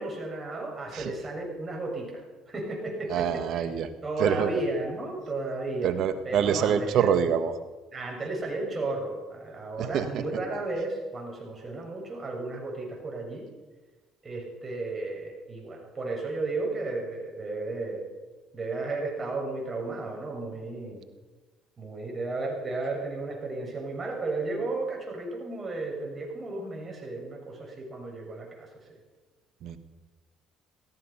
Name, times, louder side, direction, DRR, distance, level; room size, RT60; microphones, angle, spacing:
voice 1, 0.0-3.7 4.0-5.9 6.3-7.1 7.9-13.5 14.2-18.0 18.5-21.0 21.8-29.0, right 2 dB, 35° right, 0 dB, 7.0 m, -34 dB
voice 2, 3.1-3.9 4.2-4.5 5.8-7.5 9.8-10.2 29.6-29.8, right 8 dB, 65° right, 11 dB, 1.5 m, -26 dB
17.0 x 14.5 x 5.8 m, 1.3 s
hypercardioid pair, 65°, 0 cm